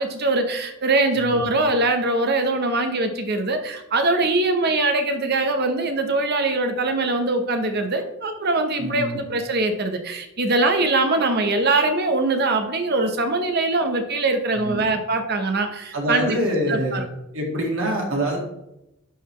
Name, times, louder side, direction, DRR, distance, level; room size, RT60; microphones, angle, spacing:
voice 1, 0.0-16.4 16.7-17.0, right 2 dB, 50° right, 6 dB, 0.8 m, -22 dB
voice 2, 8.8-9.2 14.5-14.8 15.9-17.0 17.3-18.4, equal, 65° right, -1 dB, 2.0 m, -25 dB
11.0 x 3.9 x 3.2 m, 0.87 s
head